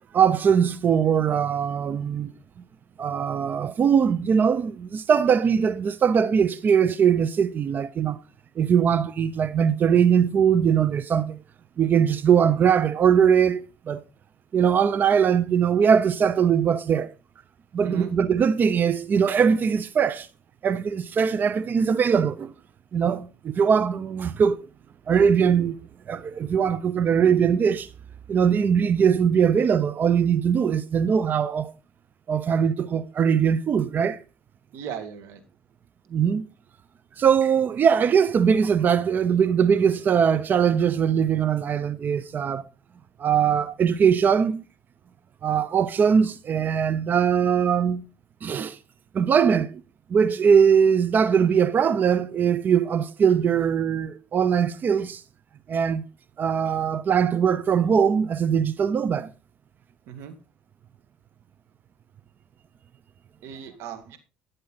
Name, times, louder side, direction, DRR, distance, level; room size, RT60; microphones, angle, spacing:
voice 1, 0.1-2.3 3.0-8.2 8.6-11.4 11.8-14.0 14.5-17.1 17.7-20.3 20.6-22.5 22.9-24.6 25.1-25.7 26.1-27.9 28.3-31.7 32.3-34.2 36.1-36.4 37.2-42.7 43.2-44.6 45.4-48.0 48.4-48.8 49.1-49.8 50.1-55.2 55.7-56.0 56.4-59.3, right 7 dB, 45° right, 0.7 m, -21 dB
voice 2, 34.7-35.4 60.1-60.3 63.4-64.2, right 8 dB, 70° right, 2.2 m, -37 dB
12.5 x 6.7 x 4.0 m
supercardioid pair, 75°, 4 cm